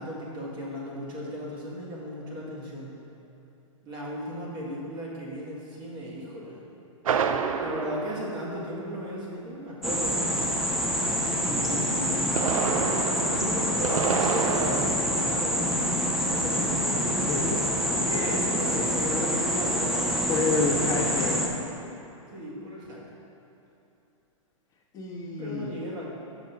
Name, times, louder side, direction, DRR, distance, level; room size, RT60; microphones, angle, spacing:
voice 1, 0.0-3.0 3.8-6.6 7.6-10.2 11.4-12.5 12.8-17.1 18.0-20.9 22.3-23.1 25.4-26.1, equal, 25° right, -5 dB, 1.8 m, -36 dB
sound 1, 7.1-9.1 12.1-14.9, right 6 dB, 80° right, 0.5 m, -29 dB
sound 2, 9.8-21.5, equal, ahead, 0.6 m, -26 dB
voice 2, 17.3-17.6 20.3-21.5 24.9-25.7, left 3 dB, 20° left, -5 dB, 1.4 m, -28 dB
6.2 x 5.2 x 5.9 m, 2.9 s
hypercardioid pair, 130°, 17 cm